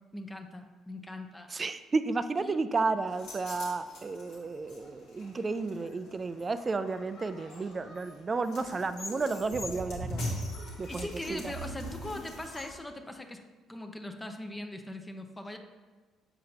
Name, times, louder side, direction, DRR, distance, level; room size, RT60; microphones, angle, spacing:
voice 1, 0.1-1.5 2.4-2.6 10.9-13.4 13.7-15.6, left 1 dB, 15° left, 5 dB, 0.6 m, -40 dB
voice 2, 1.5-10.3 10.8-11.5, right 3 dB, 35° right, 11 dB, 0.4 m, -32 dB
sound 1, 3.1-12.8, equal, 80° left, 1.4 m, -41 dB
6.7 x 4.9 x 2.8 m, 1.3 s
supercardioid pair, 65°, 0 cm